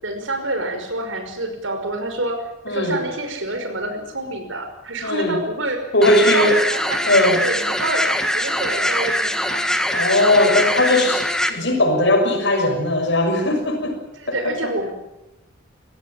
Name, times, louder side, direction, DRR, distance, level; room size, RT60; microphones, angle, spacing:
voice 1, 0.0-7.1 7.4-9.7 14.2-14.9, right 1 dB, 65° right, 6 dB, 5.4 m, -27 dB
voice 2, 2.7-3.0 5.0-5.4 5.9-6.5 7.1-7.4 9.9-11.2 11.5-13.9 14.3-14.4 14.6-14.7, left 1 dB, 55° left, 4 dB, 6.1 m, -18 dB
sound 1, 6.0-11.5, equal, 5° left, 1.7 m, -22 dB
25.0 x 17.5 x 8.9 m, 0.94 s
head